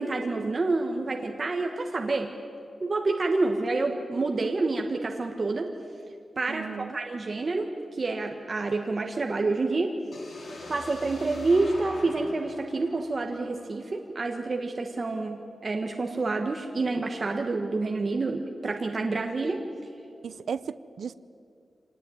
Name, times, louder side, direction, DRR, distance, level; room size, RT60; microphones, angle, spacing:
voice 1, 0.0-2.3 2.8-5.7 6.4-9.9 10.7-19.6, right 3 dB, 35° right, 3 dB, 1.4 m, -28 dB
voice 2, 6.5-7.0 20.2-21.1, right 6 dB, 80° right, 14 dB, 0.6 m, -35 dB
sound 1, 10.1-14.0, left 2 dB, 60° left, 4.3 m, -44 dB
25.5 x 19.0 x 9.2 m, 2.5 s
wide cardioid pair, 170°, 0 cm